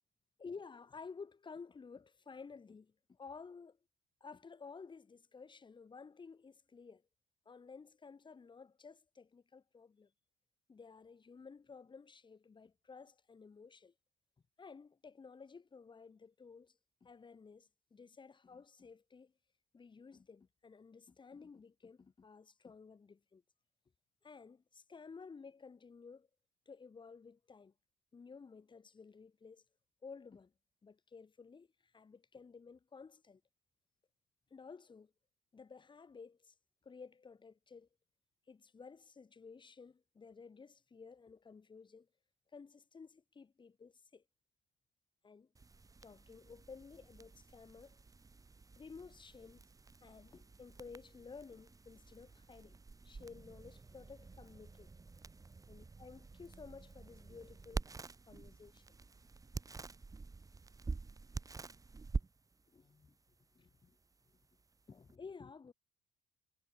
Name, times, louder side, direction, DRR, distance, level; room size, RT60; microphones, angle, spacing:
voice 1, 0.4-3.8 4.2-7.0 7.5-10.1 10.7-13.9 14.6-19.3 19.7-23.4 24.2-26.3 26.7-27.7 28.1-29.6 30.0-30.5 30.8-33.4 34.5-35.1 35.5-36.5 36.8-37.9 38.5-42.1 42.5-44.2 45.2-45.5 46.0-48.0 48.8-49.7 50.0-52.8 53.0-54.9 55.7-57.8 58.3-58.8 62.7-63.2 63.5-64.0 64.9-65.7, left 5 dB, 30° left, 4.0 m, -54 dB
sound 1, 45.6-65.2, right 3 dB, 20° right, 2.7 m, -48 dB
cardioid pair, 110°, 17 cm